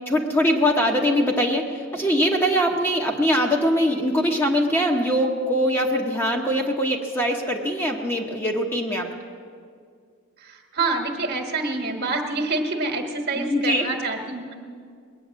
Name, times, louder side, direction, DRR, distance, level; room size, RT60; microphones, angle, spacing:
voice 1, 0.1-9.1 13.4-13.9, equal, 10° left, 1 dB, 1.0 m, -22 dB
voice 2, 10.4-14.5, right 3 dB, 50° right, 4 dB, 1.5 m, -27 dB
20.0 x 9.3 x 7.4 m, 2.2 s
head